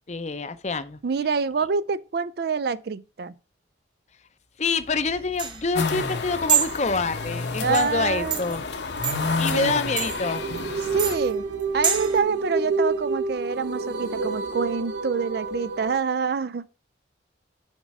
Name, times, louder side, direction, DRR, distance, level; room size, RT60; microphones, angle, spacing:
voice 1, 0.1-1.0 4.6-8.6 9.4-10.4, left 4 dB, 35° left, 0.6 m, -26 dB
voice 2, 1.0-3.4 7.6-8.4 9.5-9.9 10.9-11.4 11.7-16.7, right 5 dB, 55° right, 0.4 m, -26 dB
sound 1, 4.8-12.2, right 7 dB, 25° right, 1.0 m, -29 dB
sound 2, 5.7-11.2, left 4 dB, 65° left, 1.0 m, -29 dB
sound 3, 10.0-16.0, right 3 dB, 80° right, 1.2 m, -29 dB
7.3 x 5.2 x 4.7 m
head